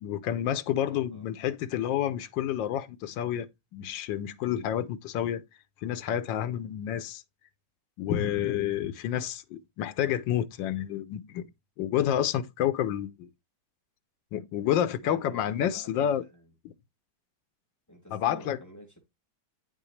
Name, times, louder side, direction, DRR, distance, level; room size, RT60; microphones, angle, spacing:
voice 1, 0.0-3.5 3.7-5.4 5.8-7.2 8.0-11.5 11.8-13.3 14.3-16.2 16.6-16.7 18.1-18.6, left 10 dB, 90° left, 1.4 m, -29 dB
voice 2, 0.8-1.2 15.0-16.3 17.9-19.0, left 1 dB, 10° left, 2.6 m, -48 dB
9.2 x 6.0 x 3.2 m
omnidirectional pair, 2.0 m